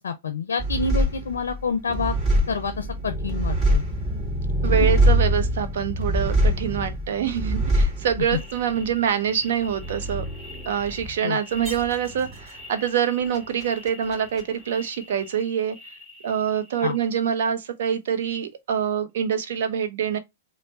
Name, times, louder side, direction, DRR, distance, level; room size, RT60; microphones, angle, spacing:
voice 1, 0.0-2.1 2.5-3.8 11.2-11.4 16.8-17.0, left 5 dB, 70° left, 0.4 m, -28 dB
sound 1, 0.6-15.5 15.8-16.6, right 1 dB, 25° right, 1.9 m, -25 dB
voice 2, 4.6-10.2 10.7-15.8 16.2-20.2, right 8 dB, 60° right, 0.7 m, -25 dB
3.2 x 2.1 x 3.9 m
figure-of-eight pair, 105°, 0 cm